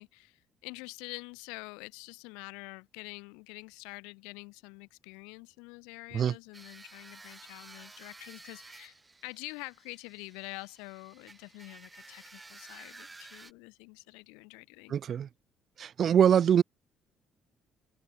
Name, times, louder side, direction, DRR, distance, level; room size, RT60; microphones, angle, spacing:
voice 1, 0.0-8.9 9.2-15.0, left 30 dB, 85° left, 5.0 m, -46 dB
sound 1, 6.5-13.5, right 3 dB, 20° right, 3.2 m, -52 dB
voice 2, 14.9-15.3 15.8-16.6, right 8 dB, 55° right, 0.4 m, -23 dB
supercardioid pair, 70°, 0 cm